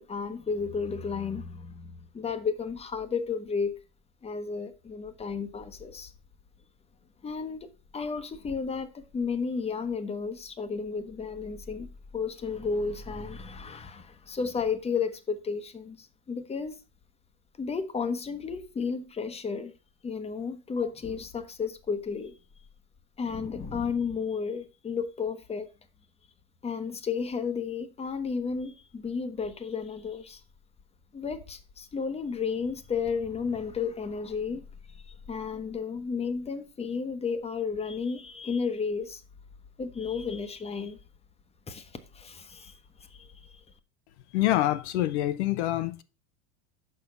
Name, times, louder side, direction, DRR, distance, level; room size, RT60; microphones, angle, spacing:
voice 1, 0.0-3.7 4.2-6.1 7.2-7.7 7.9-11.9 12.1-16.8 17.6-19.7 20.0-22.3 23.2-25.7 26.6-30.4 31.1-34.6 34.9-39.2 39.8-41.0 41.7-42.8 43.1-43.6, left 5 dB, 20° left, 1.0 m, -33 dB
voice 2, 44.3-46.0, left 14 dB, 80° left, 0.9 m, -26 dB
6.8 x 5.4 x 5.3 m
supercardioid pair, 115°, 34 cm